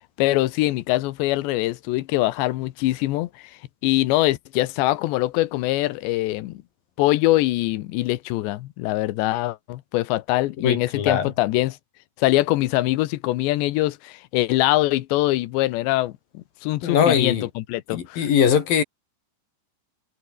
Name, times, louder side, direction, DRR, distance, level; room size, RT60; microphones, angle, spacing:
voice 1, 0.2-3.3 3.8-6.6 7.0-11.8 12.2-18.3, left 17 dB, 90° left, 3.2 m, -23 dB
voice 2, 10.6-11.3 16.8-17.5 17.9-18.8, left 8 dB, 60° left, 4.0 m, -21 dB
omnidirectional pair, 4.9 m